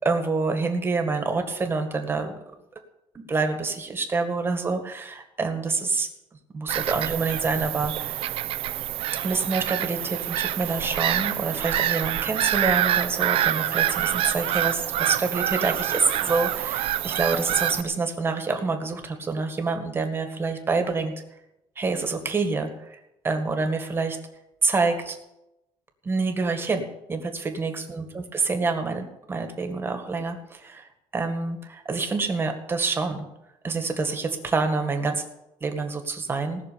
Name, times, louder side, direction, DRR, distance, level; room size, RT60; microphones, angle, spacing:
voice 1, 0.0-2.3 3.1-6.1 6.5-8.2 9.2-21.1 21.8-23.0 23.2-24.2 24.6-25.2 26.0-33.3 33.6-35.2 35.6-36.6, right 4 dB, 20° right, 6 dB, 1.9 m, -27 dB
Bird vocalization bird call bird song / Gull seagull, 6.7-17.8, right 12 dB, 65° right, 0.8 m, -26 dB
18.5 x 6.6 x 8.6 m, 0.90 s
cardioid pair, 150°, 10 cm